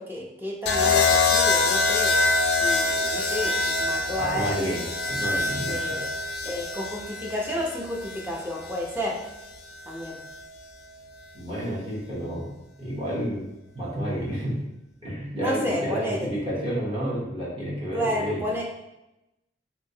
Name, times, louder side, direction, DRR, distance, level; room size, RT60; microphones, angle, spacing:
voice 1, 0.0-2.1 2.6-4.9 5.7-6.1 6.4-9.2 9.9-10.2 15.4-16.3 17.9-18.6, left 1 dB, 10° right, -2 dB, 0.5 m, -31 dB
sound 1, 0.7-8.8 10.0-10.4, left 3 dB, 60° left, 0.4 m, -25 dB
voice 2, 4.2-6.0 11.3-12.5 12.8-13.5 13.7-14.6 15.0-18.4, equal, 30° right, -7 dB, 0.9 m, -30 dB
2.9 x 2.7 x 2.7 m, 0.93 s
head